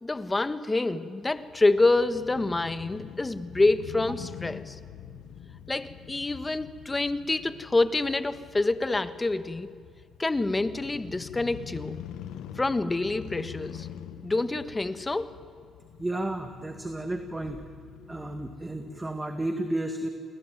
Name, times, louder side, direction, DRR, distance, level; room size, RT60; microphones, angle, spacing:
voice 1, 0.0-4.8 5.7-9.7 10.2-12.0 12.6-13.9 14.2-15.3, left 2 dB, 20° left, 1.4 m, -27 dB
Crow / Motorcycle, 1.2-19.1, left 9 dB, 85° left, 1.4 m, -45 dB
voice 2, 16.0-17.6 18.1-20.1, right 1 dB, 15° right, 2.0 m, -32 dB
28.5 x 21.0 x 9.3 m
cardioid pair, 90°, 0 cm